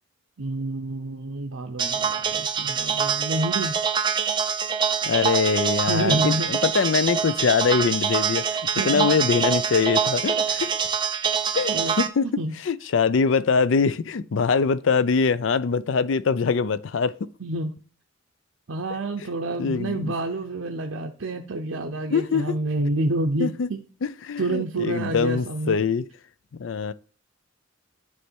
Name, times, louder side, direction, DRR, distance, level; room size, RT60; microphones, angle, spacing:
voice 1, 0.4-3.8 5.8-6.5 8.8-9.1 11.7-12.0 12.4-12.5 17.4-17.7 18.7-23.8 24.4-25.8, right 2 dB, 75° right, 0.7 m, -28 dB
sound 1, 1.8-12.1, right 6 dB, 20° right, 0.4 m, -25 dB
voice 2, 5.1-10.7 11.5-12.3 12.7-17.1 19.6-20.1 22.1-22.6 23.4-23.7 24.0-26.1 26.6-26.9, left 5 dB, 65° left, 0.4 m, -23 dB
9.6 x 3.3 x 4.4 m
head